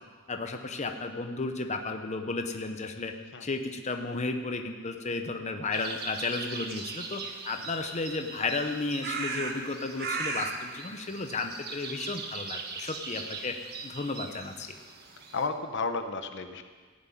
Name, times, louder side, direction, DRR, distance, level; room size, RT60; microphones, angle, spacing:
voice 1, 0.3-3.1 3.4-13.6 13.8-14.8, left 3 dB, 35° left, 6 dB, 0.9 m, -33 dB
sound 1, 5.7-15.5, right 4 dB, 50° right, 1.5 m, -38 dB
voice 2, 15.3-16.6, left 4 dB, 60° left, 8 dB, 0.9 m, -32 dB
15.0 x 7.6 x 9.3 m, 1.5 s
head